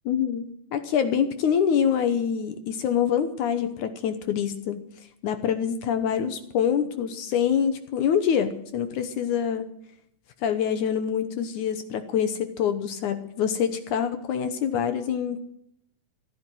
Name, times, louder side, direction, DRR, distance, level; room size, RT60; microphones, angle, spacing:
voice 1, 0.1-0.5 0.7-4.9 5.2-9.7 10.4-15.4, left 8 dB, 70° left, 10 dB, 2.2 m, -25 dB
14.5 x 12.0 x 7.7 m, 0.76 s
omnidirectional pair, 4.2 m